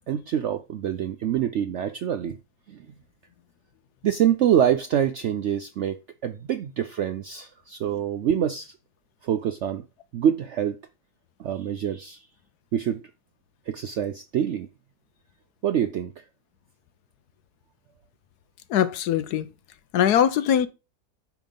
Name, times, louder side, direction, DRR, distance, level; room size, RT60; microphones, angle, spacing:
voice 1, 0.1-2.4 2.7-2.9 4.0-8.7 9.2-9.9 10.1-10.8 11.4-12.3 12.7-13.0 13.7-14.7 15.6-16.2, right 9 dB, 70° right, 0.6 m, -25 dB
voice 2, 18.7-19.5 19.9-20.7, left 9 dB, 75° left, 1.2 m, -21 dB
9.3 x 3.8 x 5.2 m
omnidirectional pair, 1.8 m